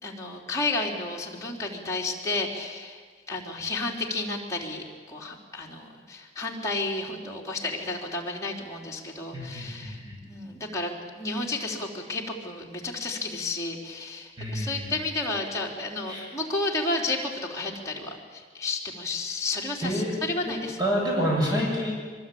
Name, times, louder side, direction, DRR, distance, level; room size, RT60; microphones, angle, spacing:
voice 1, 0.0-3.0 3.3-10.0 10.2-20.8, left 2 dB, 20° left, -2 dB, 4.0 m, -32 dB
voice 2, 9.3-10.2 14.4-14.9 16.1-16.3 19.8-20.1 20.5-21.9, equal, 25° right, -3 dB, 7.4 m, -28 dB
24.0 x 24.0 x 8.9 m, 1.5 s
head